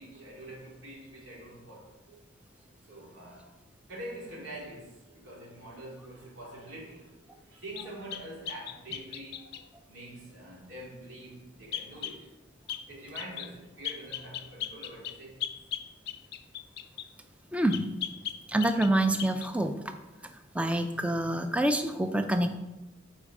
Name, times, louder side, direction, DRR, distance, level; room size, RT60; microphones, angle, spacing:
voice 1, 0.0-2.2 2.5-3.6 3.9-12.3 12.9-15.5, right 1 dB, 80° right, 2.6 m, -45 dB
sound 1, 7.8-9.7 11.7-12.2 12.7-12.9 13.2-13.5 13.8-17.1 17.7-18.9 19.2-19.5, left 10 dB, 55° left, 0.4 m, -38 dB
voice 2, 17.5-17.9 18.5-19.7 20.5-22.6, right 1 dB, 5° right, 0.4 m, -26 dB
8.5 x 4.4 x 4.9 m
head